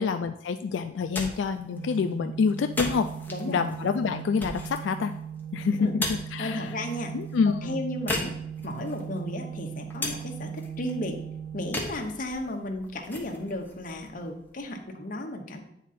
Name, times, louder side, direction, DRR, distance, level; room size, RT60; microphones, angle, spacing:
voice 1, 0.0-3.1 3.5-5.1 5.5-6.7 7.1-7.8, left 5 dB, 85° left, 7 dB, 0.3 m, -27 dB
sound 1, 0.9-14.8, left 2 dB, 10° left, 1.0 m, -39 dB
Organ, 1.7-12.6, right 8 dB, 60° right, 1.4 m, -39 dB
voice 2, 3.3-3.6 5.8-5.9 6.4-7.1 7.6-8.3 8.6-11.2 11.5-15.6, left 1 dB, 50° left, 3 dB, 0.9 m, -34 dB
9.0 x 3.6 x 4.2 m, 0.76 s
head